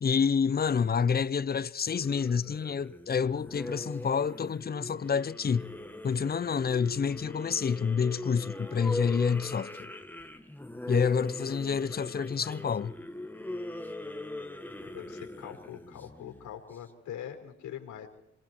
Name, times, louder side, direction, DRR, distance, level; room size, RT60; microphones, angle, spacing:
voice 1, 0.0-5.7 6.0-9.9 10.9-12.9, left 6 dB, 30° left, 0.8 m, -28 dB
sound 1, 1.9-16.8, left 1 dB, 5° left, 2.1 m, -41 dB
voice 2, 14.8-18.1, left 9 dB, 80° left, 5.0 m, -43 dB
26.0 x 23.5 x 4.7 m
cardioid pair, 90°, 30 cm